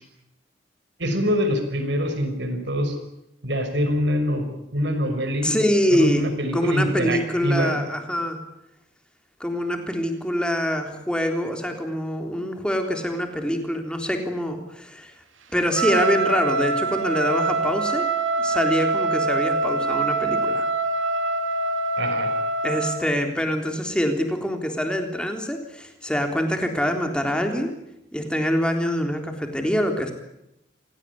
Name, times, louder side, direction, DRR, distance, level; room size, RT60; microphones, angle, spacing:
voice 1, 1.0-3.0 3.4-4.4 4.7-5.6 5.9-7.8 22.0-22.3, equal, 65° right, 6 dB, 5.7 m, -24 dB
voice 2, 5.4-6.3 6.5-8.4 9.4-15.1 15.5-18.1 18.4-20.7 22.6-27.7 28.1-30.1, equal, 5° left, 4 dB, 3.6 m, -25 dB
Trumpet, 15.7-23.0, right 3 dB, 85° right, 2.4 m, -24 dB
27.0 x 18.0 x 9.8 m, 0.86 s
head